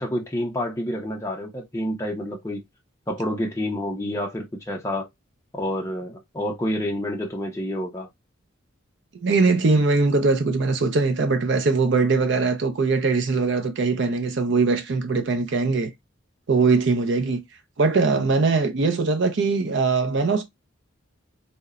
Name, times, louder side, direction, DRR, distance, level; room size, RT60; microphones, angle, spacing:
voice 1, 0.0-2.6 3.1-5.1 5.5-8.1, left 1 dB, 15° left, 0.4 m, -28 dB
voice 2, 9.2-15.9 16.5-17.4 17.8-20.4, right 3 dB, 55° right, 0.4 m, -21 dB
2.8 x 2.0 x 2.3 m
head